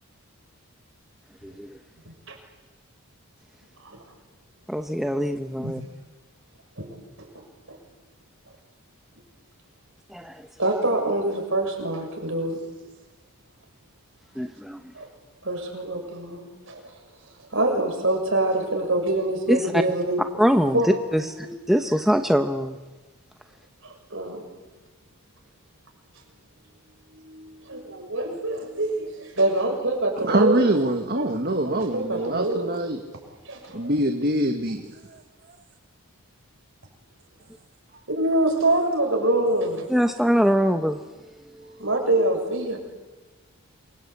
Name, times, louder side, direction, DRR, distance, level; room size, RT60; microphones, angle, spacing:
voice 1, 4.7-5.8 10.1-10.4 14.4-14.8 19.5-19.8 20.4-22.8 39.9-41.0, equal, ahead, 5 dB, 0.9 m, -22 dB
voice 2, 10.6-12.6 14.9-15.1 15.4-16.8 17.5-20.2 20.7-20.9 21.2-21.5 23.8-24.4 27.2-30.6 31.1-31.3 31.6-32.7 33.4-33.9 38.1-39.8 41.8-42.8, right 1 dB, 60° right, 3 dB, 6.9 m, -25 dB
voice 3, 30.2-33.0 33.7-35.2, right 1 dB, 45° right, 4 dB, 1.7 m, -24 dB
28.0 x 24.0 x 8.5 m, 1.2 s
head